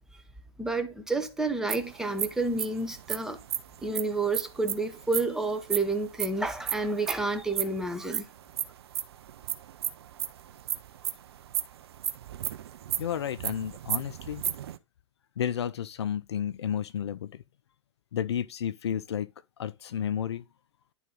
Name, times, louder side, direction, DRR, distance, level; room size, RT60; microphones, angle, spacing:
voice 1, 0.6-3.4 3.8-8.3, right 3 dB, 5° right, 0.8 m, -30 dB
sound 1, 1.7-5.2 5.5-7.2 7.6-14.8, right 10 dB, 60° right, 0.6 m, -33 dB
voice 2, 13.0-14.4 15.4-17.4 18.1-19.3 19.6-20.4, left 9 dB, 65° left, 0.4 m, -32 dB
10.0 x 3.8 x 3.7 m
figure-of-eight pair, 115°, 15 cm